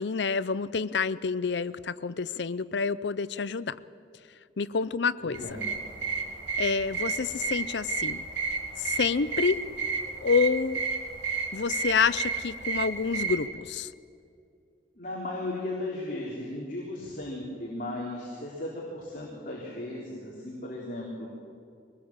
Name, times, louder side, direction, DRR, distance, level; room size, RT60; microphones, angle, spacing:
voice 1, 0.0-3.8 4.6-5.5 6.6-8.2 8.8-9.6 10.2-10.8 11.5-13.9, left 5 dB, 65° left, 17 dB, 0.6 m, -28 dB
voice 2, 5.2-5.7 15.0-21.3, left 1 dB, 45° left, -4 dB, 3.8 m, -36 dB
sound 1, 5.3-13.5, right 5 dB, 75° right, 2.5 m, -32 dB
23.5 x 19.5 x 7.4 m, 2.4 s
head